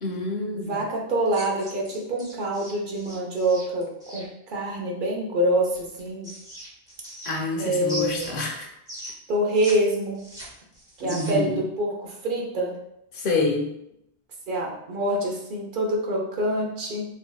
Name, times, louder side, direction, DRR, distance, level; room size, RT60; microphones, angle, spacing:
voice 1, 0.0-0.8 7.2-8.7 11.0-11.6 13.1-13.7, left 3 dB, 60° left, 1 dB, 0.7 m, -27 dB
voice 2, 0.5-6.3 7.6-8.4 9.3-10.2 11.0-12.8 14.5-17.1, right 1 dB, 55° right, -1 dB, 0.7 m, -26 dB
sound 1, 1.3-4.3 5.7-7.6 7.9-9.7 10.0-11.5, right 1 dB, 5° right, 0.4 m, -40 dB
3.1 x 2.6 x 2.2 m, 0.80 s
omnidirectional pair, 1.1 m